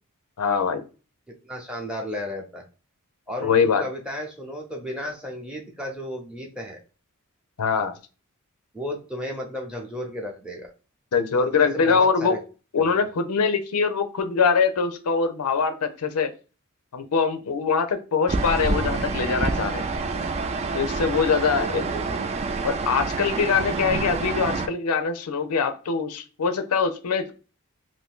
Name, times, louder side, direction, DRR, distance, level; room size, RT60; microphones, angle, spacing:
voice 1, 0.4-0.8 3.4-3.9 7.6-8.0 11.1-12.4 12.7-16.3 16.9-19.9 20.7-21.8 22.6-27.3, left 5 dB, 90° left, 8 dB, 0.5 m, -23 dB
voice 2, 1.3-2.6 3.3-6.8 8.7-10.7 11.7-12.4 12.8-13.0 21.5-22.2, equal, 5° right, 2 dB, 0.7 m, -34 dB
sound 1, 18.3-24.7, right 3 dB, 30° right, 0.3 m, -27 dB
2.6 x 2.6 x 3.5 m, 0.34 s
head